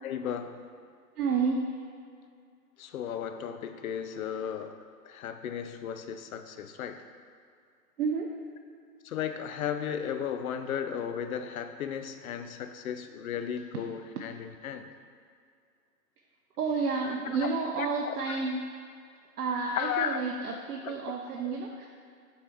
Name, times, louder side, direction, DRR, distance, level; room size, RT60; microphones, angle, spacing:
voice 1, 0.0-0.6 2.8-4.8 5.0-7.0 9.0-14.9 17.4-17.5 17.8-18.4 19.8-20.2 20.8-20.9 21.4-21.6, left 8 dB, 60° left, 8 dB, 0.6 m, -35 dB
voice 2, 1.2-1.7 8.0-8.3 16.6-18.6 19.4-21.9, right 4 dB, 65° right, 0 dB, 0.7 m, -30 dB
7.1 x 4.3 x 3.5 m, 2.2 s
hypercardioid pair, 145°, 49 cm